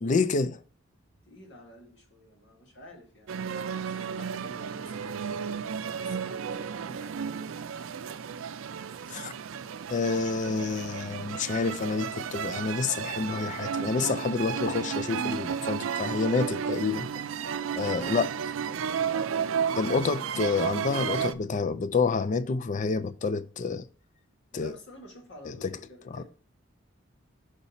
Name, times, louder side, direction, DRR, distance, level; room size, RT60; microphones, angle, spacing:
voice 1, 0.0-0.6 9.1-9.3 9.9-17.1 17.8-18.3 19.8-23.9 24.5-24.7 25.5-25.7 26.1-26.2, left 4 dB, 40° left, 0.4 m, -28 dB
voice 2, 1.3-7.7 17.7-18.4 18.7-19.3 24.5-26.2, left 1 dB, 65° left, 1.7 m, -51 dB
sound 1, 3.3-21.3, right 7 dB, 90° right, 0.4 m, -33 dB
5.6 x 5.2 x 4.1 m
head